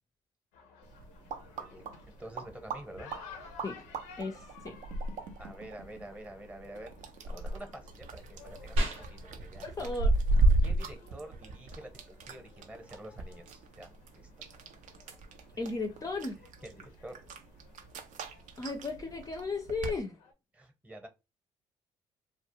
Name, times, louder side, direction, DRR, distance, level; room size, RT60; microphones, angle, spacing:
sound 1, 0.5-20.3, left 6 dB, 80° left, 0.5 m, -56 dB
sound 2, 0.8-20.0, right 2 dB, 65° right, 0.4 m, -35 dB
voice 1, 1.6-3.1 5.4-7.0 7.3-9.7 10.6-13.9 14.2-14.3 16.6-17.2 20.5-21.1, right 1 dB, 10° right, 0.8 m, -48 dB
voice 2, 4.2-4.8 9.6-10.1 15.6-16.4 18.6-20.1, left 3 dB, 25° left, 0.4 m, -35 dB
sound 3, 8.8-18.8, equal, 90° right, 0.8 m, -42 dB
2.3 x 2.0 x 2.9 m
hypercardioid pair, 55°, 13 cm